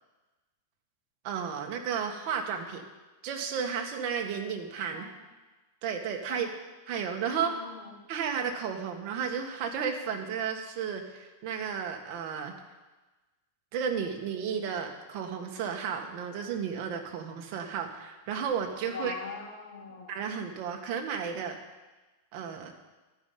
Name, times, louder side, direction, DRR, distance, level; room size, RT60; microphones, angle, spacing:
voice 1, 1.2-2.8 3.2-5.1 5.8-6.5 6.9-7.5 8.1-12.5 13.7-19.1 20.1-21.6 22.3-22.7, right 7 dB, 40° right, 3 dB, 1.5 m, -33 dB
voice 2, 7.3-7.9 18.9-20.2, left 4 dB, 65° left, -3 dB, 3.7 m, -42 dB
12.5 x 5.7 x 9.2 m, 1.2 s
supercardioid pair, 165°, 0 cm